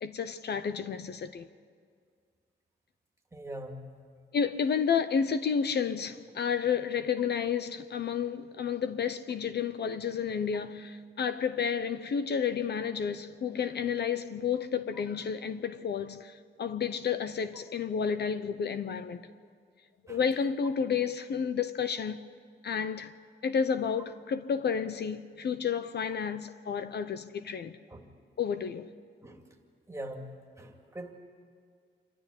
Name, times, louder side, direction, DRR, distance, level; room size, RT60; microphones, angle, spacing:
voice 1, 0.0-1.5 4.3-19.2 20.1-22.2 22.6-23.1 23.4-27.8 28.4-28.9, left 7 dB, 60° left, 0.7 m, -31 dB
voice 2, 3.3-3.8 20.1-20.2 27.9-28.0 29.2-29.4 29.9-30.3 30.6-31.1, right 1 dB, 15° right, 2.4 m, -41 dB
27.0 x 12.5 x 9.8 m
wide cardioid pair, 140°, 20 cm